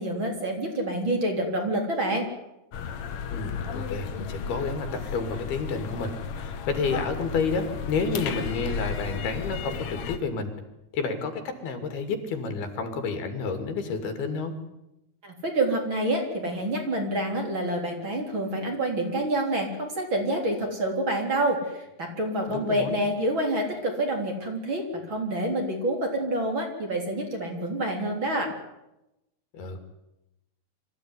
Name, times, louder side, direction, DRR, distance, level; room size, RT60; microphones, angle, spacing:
voice 1, 0.0-2.3 15.2-28.5, right 1 dB, 30° right, 2 dB, 4.1 m, -27 dB
sound 1, 2.7-10.2, left 6 dB, 55° left, 1.7 m, -34 dB
voice 2, 3.3-10.5 10.9-14.5 22.5-23.0 29.5-29.8, left 4 dB, 85° left, 7 dB, 4.5 m, -30 dB
25.0 x 15.0 x 9.8 m, 0.91 s
omnidirectional pair, 4.4 m